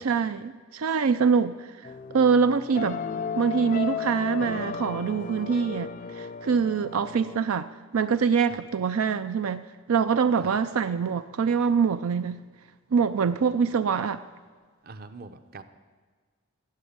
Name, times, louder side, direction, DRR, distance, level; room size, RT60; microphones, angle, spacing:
voice 1, 0.0-1.7 2.1-3.0 3.3-12.4 12.9-14.2, right 6 dB, 80° right, 12 dB, 0.4 m, -24 dB
sound 1, 1.8-7.4, left 6 dB, 35° left, 0.4 m, -35 dB
voice 2, 14.8-15.6, right 3 dB, 45° right, 10 dB, 0.7 m, -43 dB
14.5 x 8.2 x 8.7 m, 1.5 s
head